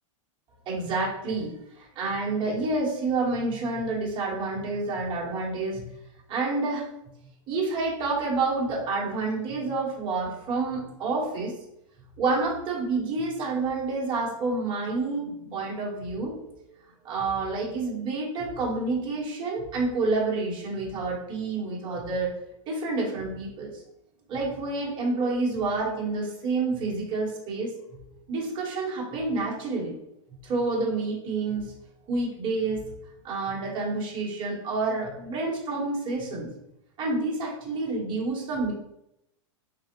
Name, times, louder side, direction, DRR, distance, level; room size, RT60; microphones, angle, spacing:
voice 1, 0.7-5.8 6.3-6.8 7.5-11.5 12.2-16.7 17.0-22.3 22.7-23.7 24.3-28.0 28.3-30.0 30.4-31.7 32.1-32.8 33.2-36.5 37.0-38.7, right 3 dB, 30° right, -3 dB, 1.1 m, -28 dB
3.3 x 2.3 x 2.9 m, 0.82 s
supercardioid pair, 140°, 17 cm